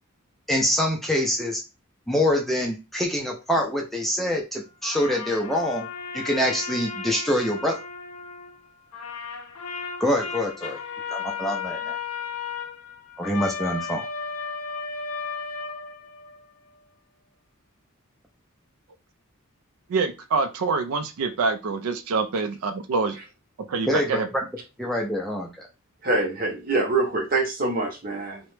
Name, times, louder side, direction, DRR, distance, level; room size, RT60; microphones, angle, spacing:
voice 1, 0.5-1.6 2.1-5.9 6.1-7.8 10.0-10.8 11.1-12.0 13.2-14.1 23.9-24.2 24.8-25.7, left 1 dB, ahead, -1 dB, 0.4 m, -25 dB
sound 1, 4.8-8.6 8.9-16.5, left 6 dB, 90° left, 0.5 m, -34 dB
voice 2, 19.9-23.2 23.6-24.3, right 4 dB, 80° right, 8 dB, 0.4 m, -26 dB
voice 3, 26.0-28.4, right 3 dB, 40° right, 2 dB, 0.7 m, -25 dB
2.9 x 2.1 x 3.1 m, 0.28 s
head